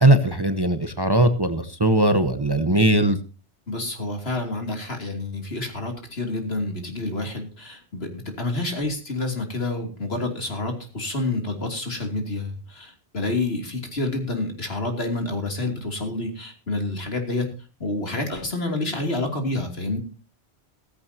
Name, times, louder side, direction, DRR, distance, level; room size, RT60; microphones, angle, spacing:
voice 1, 0.0-3.2, right 1 dB, 25° right, 9 dB, 1.0 m, -19 dB
voice 2, 3.7-17.5 17.8-20.0, left 2 dB, 65° left, 4 dB, 3.2 m, -28 dB
16.0 x 15.0 x 2.9 m, 0.32 s
omnidirectional pair, 1.1 m